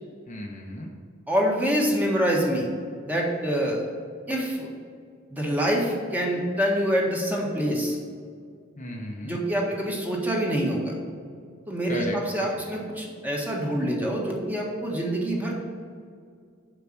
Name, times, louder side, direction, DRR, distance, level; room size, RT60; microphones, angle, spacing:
voice 1, 0.3-0.9 8.8-9.4 11.9-12.9, left 1 dB, 35° left, 1 dB, 0.9 m, -36 dB
voice 2, 1.3-2.7 3.0-3.8 4.3-4.7 5.3-8.0 9.2-10.9 11.7-15.7, equal, 10° right, -2 dB, 1.6 m, -26 dB
6.9 x 5.8 x 7.4 m, 2.1 s
head